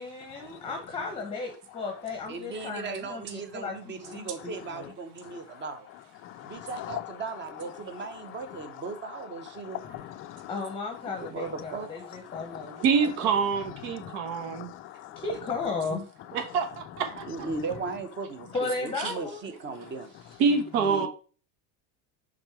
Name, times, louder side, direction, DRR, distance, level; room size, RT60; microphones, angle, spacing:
voice 1, 0.0-4.9 10.5-13.3 15.2-16.1 18.5-19.4 20.5-21.0, left 3 dB, 10° left, 1.0 m, -35 dB
voice 2, 2.3-5.9 6.4-9.8 11.1-11.9 17.3-20.1 20.9-21.1, right 4 dB, 25° right, 0.9 m, -37 dB
voice 3, 6.2-7.0 9.7-10.5 12.3-12.8 14.0-15.2, left 14 dB, 30° left, 0.4 m, -40 dB
voice 4, 12.8-14.7 16.3-17.2 20.4-21.1, right 5 dB, 70° right, 1.4 m, -26 dB
6.1 x 4.0 x 4.8 m
supercardioid pair, 140°, 46 cm